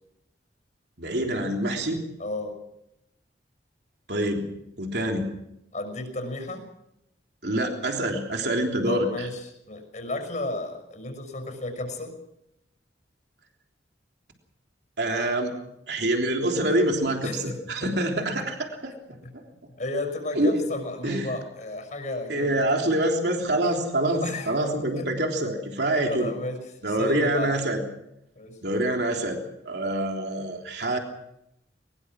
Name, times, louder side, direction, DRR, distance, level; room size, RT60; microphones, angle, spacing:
voice 1, 1.0-2.0 4.1-4.5 4.8-5.3 7.4-9.3 15.0-15.5 15.9-18.9 20.4-20.6 21.0-21.3 22.3-26.3 26.8-27.8 28.6-29.4 29.7-31.0, right 1 dB, 65° right, 2 dB, 3.5 m, -26 dB
voice 2, 2.2-2.6 5.7-6.7 8.9-12.1 17.2-17.9 18.8-19.3 19.8-22.6 24.2-24.5 25.0-25.1 26.1-27.6 28.4-28.6, left 2 dB, 45° left, 5 dB, 5.9 m, -33 dB
22.5 x 21.5 x 6.1 m, 0.82 s
head